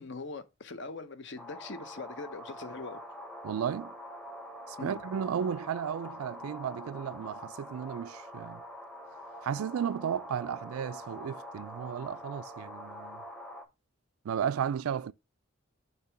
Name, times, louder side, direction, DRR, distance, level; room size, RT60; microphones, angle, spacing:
voice 1, 0.0-3.0 4.8-5.0, left 3 dB, 55° left, 0.7 m, -42 dB
sound 1, 1.4-13.7, equal, 5° left, 0.7 m, -45 dB
voice 2, 3.4-3.9 4.7-8.6 9.4-13.2 14.2-15.1, right 8 dB, 85° right, 0.3 m, -34 dB
6.6 x 2.9 x 5.7 m
head